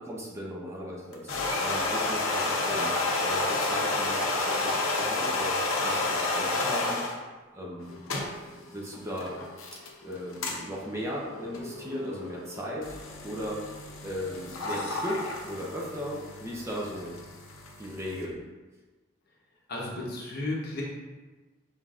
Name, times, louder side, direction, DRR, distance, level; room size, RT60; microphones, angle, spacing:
voice 1, 0.0-3.0 3.2-7.0 7.5-7.9 8.5-9.4 10.0-12.9 13.2-13.7 14.0-17.1 17.8-18.4, equal, 15° right, -4 dB, 0.7 m, -37 dB
sound 1, 1.1-7.2 7.8-18.2, left 2 dB, 70° left, 0.7 m, -31 dB
voice 2, 19.7-20.8, left 2 dB, 50° left, -3 dB, 0.9 m, -33 dB
5.6 x 3.7 x 2.4 m, 1.2 s
head